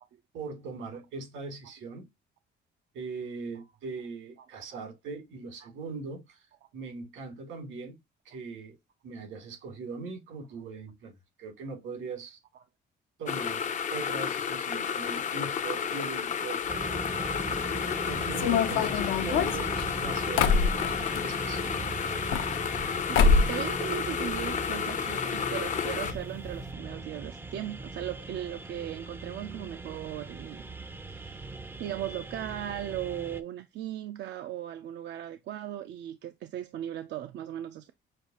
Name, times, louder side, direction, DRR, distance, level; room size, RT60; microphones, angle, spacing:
voice 1, 0.3-2.1 2.9-8.0 8.2-8.8 9.0-12.4 13.2-17.3 17.6-21.8, right 4 dB, 85° right, 2.8 m, -41 dB
sound 1, 13.3-26.1, left 7 dB, 40° left, 0.5 m, -32 dB
sound 2, 16.7-33.4, right 3 dB, 10° right, 0.5 m, -40 dB
sound 3, 18.3-21.2 22.1-22.9 23.1-23.6 23.9-24.7 25.0-25.1 25.3-25.4 26.1-26.2 26.5-26.6, left 5 dB, 80° left, 0.7 m, -25 dB
voice 2, 23.1-30.7 31.1-37.9, right 11 dB, 65° right, 0.5 m, -37 dB
6.4 x 2.4 x 2.8 m
cardioid pair, 140°, 20 cm